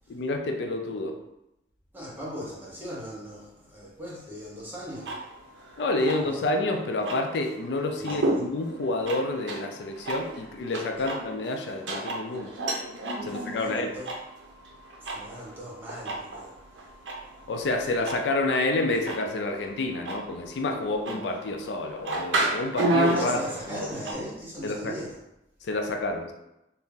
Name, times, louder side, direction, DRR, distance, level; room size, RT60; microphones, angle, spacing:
voice 1, 0.1-1.2 5.8-12.6 13.2-13.9 17.5-23.9 24.6-24.9 25.6-26.3, left 2 dB, 70° left, 4 dB, 0.4 m, -29 dB
voice 2, 1.9-5.2 6.2-6.4 8.0-8.4 11.0-11.1 13.2-14.1 15.0-16.6 23.1-25.2, equal, 10° right, -6 dB, 0.9 m, -39 dB
sound 1, 4.9-24.1, right 2 dB, 80° right, 0.6 m, -33 dB
2.8 x 2.5 x 3.7 m, 0.87 s
head